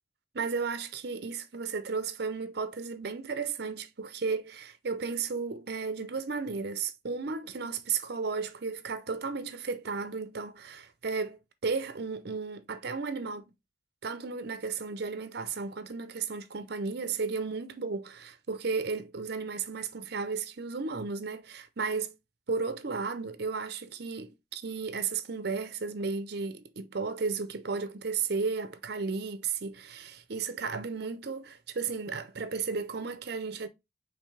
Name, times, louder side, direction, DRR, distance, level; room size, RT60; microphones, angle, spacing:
voice 1, 0.3-13.5 14.0-22.1 22.5-33.7, right 4 dB, 55° right, 0.6 m, -34 dB
5.1 x 3.2 x 3.3 m
head